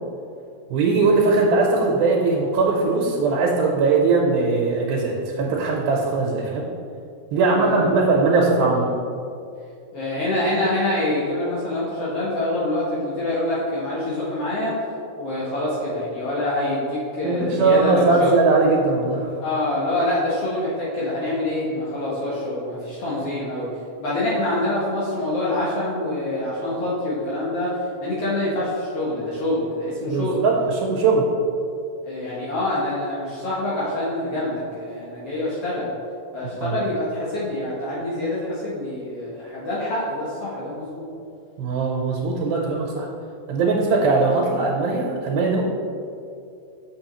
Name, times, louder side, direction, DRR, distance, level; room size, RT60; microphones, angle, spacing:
voice 1, 0.7-6.7 7.3-8.9 17.2-19.3 30.1-31.3 36.6-36.8 41.6-43.1 43.5-45.6, right 3 dB, 85° right, -3 dB, 2.6 m, -20 dB
voice 2, 7.4-8.1 8.3-8.4 8.7-8.8 9.9-14.8 15.2-18.3 19.4-23.7 24.0-30.4 32.0-35.9 36.3-41.1, left 1 dB, 75° left, -7 dB, 1.4 m, -26 dB
6.7 x 6.3 x 3.1 m, 2.5 s
omnidirectional pair, 4.2 m